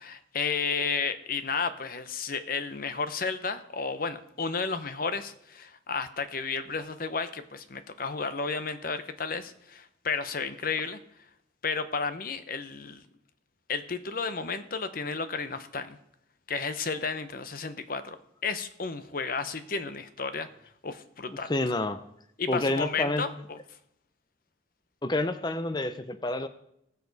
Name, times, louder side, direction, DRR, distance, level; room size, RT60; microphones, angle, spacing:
voice 1, 0.0-11.0 11.6-13.0 13.7-16.0 16.5-18.2 18.4-20.5 20.8-21.5 22.4-23.6, left 5 dB, 45° left, 11 dB, 0.8 m, -32 dB
voice 2, 21.3-22.0 22.5-23.2 25.0-26.5, left 2 dB, 20° left, 11 dB, 0.6 m, -29 dB
20.5 x 6.9 x 4.1 m, 0.75 s
head